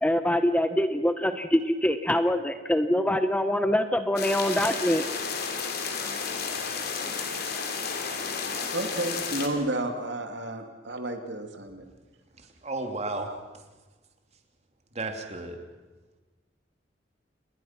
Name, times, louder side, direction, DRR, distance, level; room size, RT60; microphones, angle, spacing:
voice 1, 0.0-5.0, left 1 dB, 5° left, 9 dB, 1.0 m, -24 dB
sound 1, 4.2-9.5, left 5 dB, 60° left, 3.1 m, -32 dB
voice 2, 8.7-11.8, right 1 dB, 70° right, 5 dB, 2.7 m, -31 dB
voice 3, 12.4-13.3 14.9-15.6, right 2 dB, 35° right, 4 dB, 2.8 m, -33 dB
28.5 x 21.0 x 6.0 m, 1.2 s
head